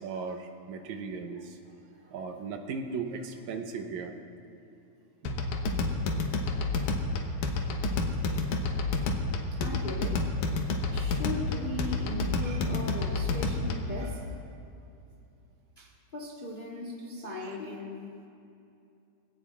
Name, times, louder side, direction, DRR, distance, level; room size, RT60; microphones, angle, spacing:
voice 1, 0.0-1.6 2.1-4.2 5.2-5.4 8.3-8.4 17.5-17.6, right 4 dB, 75° right, 5 dB, 2.2 m, -37 dB
sound 1, 5.3-14.0, left 3 dB, 85° left, 2.5 m, -30 dB
voice 2, 9.5-10.3 10.9-14.3 15.8-18.3, left 2 dB, 35° left, -2 dB, 0.8 m, -38 dB
24.0 x 17.0 x 2.5 m, 2.7 s
omnidirectional pair, 3.4 m